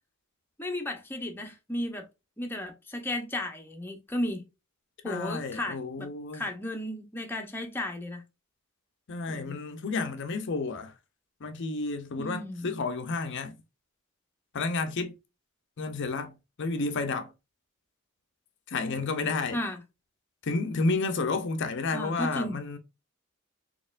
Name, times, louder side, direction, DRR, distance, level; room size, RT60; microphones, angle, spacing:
voice 1, 0.6-2.1 2.4-4.4 5.0-6.1 6.3-8.2 9.3-9.6 12.2-12.7 19.5-19.8 21.9-22.6, left 1 dB, 10° left, 0.6 m, -34 dB
voice 2, 5.0-6.5 9.1-10.9 11.4-13.6 14.5-15.2 15.8-17.3 18.7-19.6 20.4-22.8, left 3 dB, 55° left, 0.5 m, -31 dB
4.2 x 2.9 x 2.4 m
head